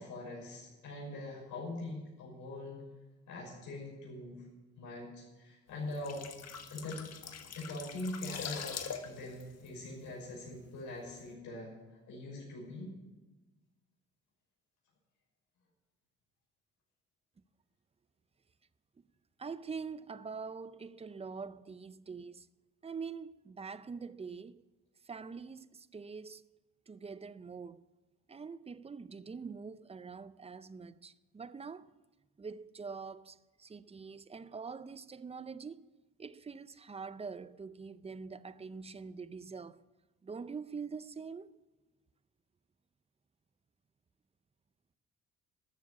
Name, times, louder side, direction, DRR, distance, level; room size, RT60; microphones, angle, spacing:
voice 1, 0.0-2.8 3.3-4.4 4.8-6.2 6.7-7.1 7.6-11.7 12.1-12.9, left 2 dB, 80° left, 6.0 m, -43 dB
sound 1, 5.8-10.6 10.9-11.1, left 6 dB, 55° left, 1.5 m, -43 dB
voice 2, 19.4-22.5 22.8-24.6 25.1-26.4 26.9-27.8 28.3-31.9 32.4-35.8 36.2-39.8 40.2-41.5, right 5 dB, 20° right, 0.5 m, -44 dB
13.5 x 7.2 x 9.8 m
cardioid pair, 90°, 30 cm